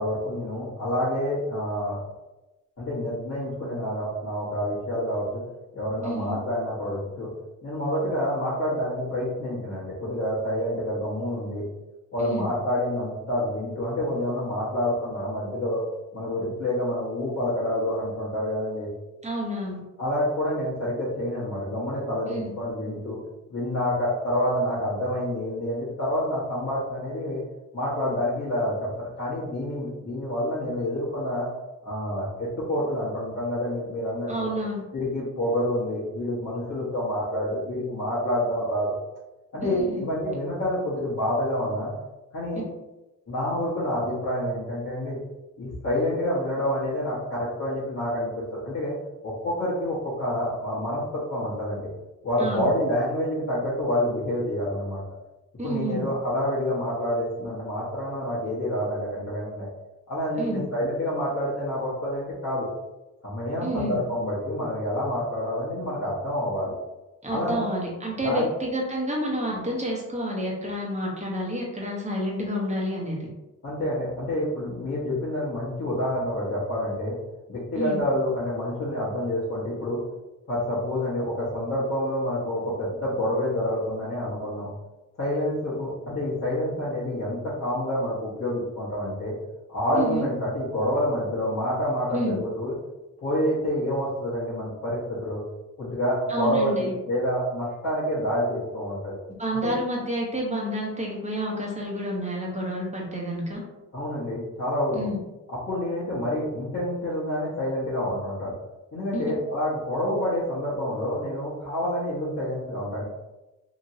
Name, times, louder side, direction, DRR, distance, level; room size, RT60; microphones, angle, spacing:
voice 1, 0.0-2.0 2.8-5.4 5.7-7.3 7.6-11.6 12.1-15.8 16.1-18.9 20.0-23.2 23.5-27.4 27.7-31.5 31.8-34.5 34.9-39.0 39.5-41.9 42.3-42.6 43.3-45.2 45.6-48.9 49.2-51.9 52.2-55.0 55.6-59.7 60.1-62.7 63.2-66.7 67.3-67.6 68.2-68.5 73.6-77.2 77.5-80.0 80.5-84.7 85.2-89.3 89.7-92.7 93.2-95.4 95.8-99.2 99.6-99.7 103.9-105.0 105.7-108.5 108.9-113.0, left 1 dB, 50° left, -10 dB, 1.1 m, -28 dB
voice 2, 6.0-6.4 12.2-12.5 19.2-19.8 22.3-22.5 34.3-34.8 39.6-40.0 52.4-52.7 55.6-56.0 60.4-60.6 63.6-64.0 67.2-73.3 77.7-78.0 89.9-90.3 92.1-92.4 96.3-96.9 99.4-103.6 104.9-105.2 109.1-109.2, equal, 20° right, -3 dB, 1.0 m, -29 dB
2.9 x 2.7 x 2.7 m, 1.0 s
cardioid pair, 85°, 31 cm